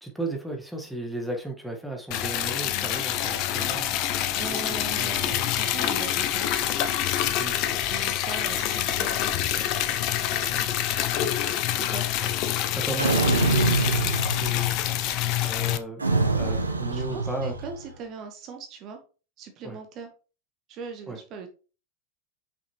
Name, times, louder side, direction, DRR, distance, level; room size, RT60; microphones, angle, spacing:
voice 1, 0.0-4.0 4.3-5.4 7.4-7.6 10.5-10.7 12.2-12.3 12.7-14.7 15.2-16.0 16.3-17.5 19.6-19.8 21.1-21.2, right 1 dB, ahead, 2 dB, 1.5 m, -35 dB
Liquid, 2.1-15.8, left 12 dB, 45° left, 0.7 m, -26 dB
voice 2, 4.4-6.5 7.8-9.6 10.3-10.6 11.8-12.1 16.9-19.0 19.4-20.1 20.7-21.5, right 5 dB, 40° right, 5 dB, 1.2 m, -40 dB
sound 1, 13.0-14.9 16.0-17.8, right 3 dB, 80° right, 0.8 m, -25 dB
5.9 x 5.8 x 3.1 m, 0.34 s
figure-of-eight pair, 85°, 0 cm